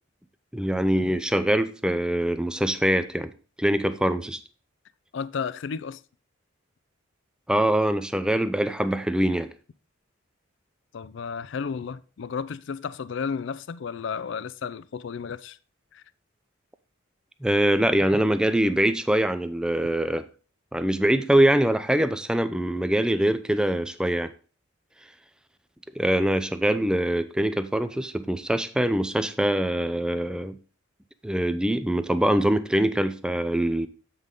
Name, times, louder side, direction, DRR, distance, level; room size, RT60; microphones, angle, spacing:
voice 1, 0.5-3.3 3.6-4.4 7.5-9.5 17.4-20.3 20.7-24.3 26.0-30.6 31.2-33.9, right 1 dB, 5° right, 0.4 m, -23 dB
voice 2, 5.1-6.0 10.9-15.6 15.9-16.0, left 6 dB, 60° left, 0.4 m, -33 dB
8.0 x 5.4 x 3.7 m
head